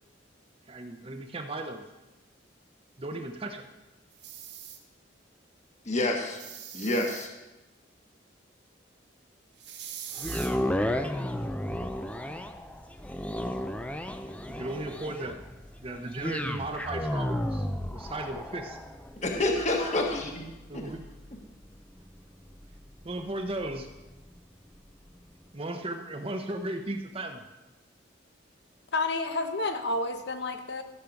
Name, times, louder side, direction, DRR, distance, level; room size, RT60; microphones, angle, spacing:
voice 1, 0.7-1.8 3.0-3.6 14.5-15.4 15.8-17.7 17.9-18.8 20.7-21.0 23.0-23.9 25.5-27.5, right 2 dB, 30° right, 5 dB, 0.8 m, -36 dB
sound 1, 4.1-4.8 6.3-7.3 9.6-10.5, right 9 dB, 60° right, 1.5 m, -42 dB
voice 2, 5.8-6.4 6.7-7.3 19.2-20.5 20.7-20.8, left 2 dB, 40° left, 2 dB, 1.3 m, -28 dB
sound 2, 10.2-24.4 24.9-25.0, left 1 dB, 5° left, 0.5 m, -34 dB
voice 3, 28.9-30.8, left 2 dB, 60° left, 7 dB, 1.0 m, -30 dB
14.0 x 6.7 x 5.9 m, 1.1 s
head